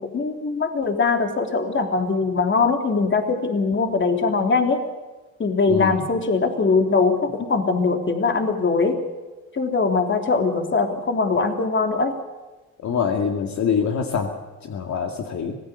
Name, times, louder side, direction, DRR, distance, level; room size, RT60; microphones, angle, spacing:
voice 1, 0.0-4.8 5.4-9.0 9.5-12.1, left 4 dB, 40° left, 5 dB, 3.3 m, -21 dB
voice 2, 5.7-6.0 12.8-14.3 14.6-15.6, left 6 dB, 65° left, 3 dB, 2.4 m, -24 dB
25.5 x 17.0 x 6.9 m, 1.2 s
cardioid pair, 90°, 30 cm